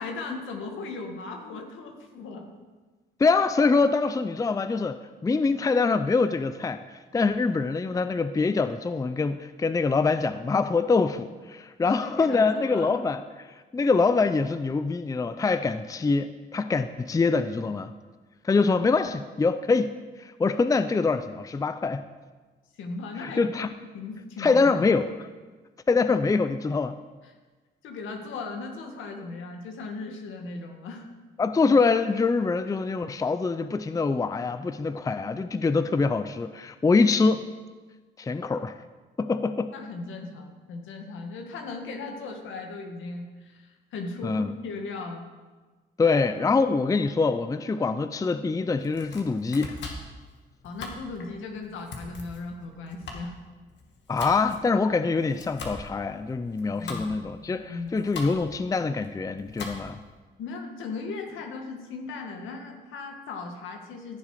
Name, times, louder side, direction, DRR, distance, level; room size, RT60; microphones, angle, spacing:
voice 1, 0.0-2.5 11.8-12.9 22.8-23.4 23.9-24.9 27.8-31.1 39.7-45.2 46.1-46.2 47.7-47.9 50.6-53.4 56.7-57.3 57.6-58.1 60.4-64.2, left 3 dB, 80° left, 3 dB, 1.9 m, -37 dB
voice 2, 3.2-17.9 18.4-22.0 23.2-23.7 24.4-25.1 25.9-27.0 31.4-37.5 38.2-38.7 39.2-39.7 44.2-44.5 46.0-49.8 54.1-60.0, left 4 dB, 15° left, 12 dB, 0.5 m, -24 dB
Domestic sounds home sounds, 48.8-60.1, left 3 dB, 65° left, 2.0 m, -42 dB
15.0 x 7.3 x 4.9 m, 1.3 s
cardioid pair, 90°, 20 cm